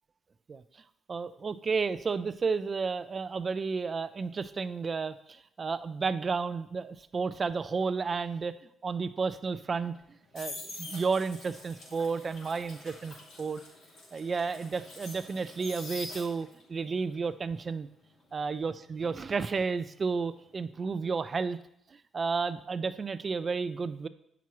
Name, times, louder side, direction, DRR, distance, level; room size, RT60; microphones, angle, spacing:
voice 1, 1.1-8.5 8.8-9.9 10.3-13.6 14.1-17.9 18.3-21.6 22.1-24.1, right 4 dB, 40° right, 13 dB, 0.4 m, -32 dB
sound 1, 9.9-16.7 17.0-19.9 20.2-20.5, left 2 dB, 80° left, 2.9 m, -46 dB
8.2 x 6.0 x 3.0 m, 0.75 s
cardioid pair, 90°, 0 cm